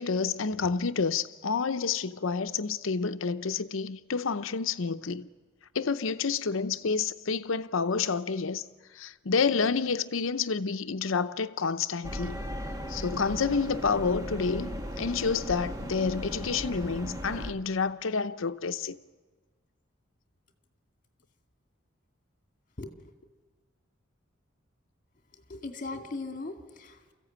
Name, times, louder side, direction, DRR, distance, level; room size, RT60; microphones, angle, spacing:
voice 1, 0.0-5.3 5.7-8.6 8.9-12.4 12.9-19.0, left 5 dB, 80° left, 0.7 m, -29 dB
sound 1, 12.0-17.5, equal, 20° right, 1.6 m, -37 dB
voice 2, 22.8-23.1 25.3-27.1, left 3 dB, 40° left, 2.3 m, -40 dB
28.5 x 15.0 x 8.8 m
head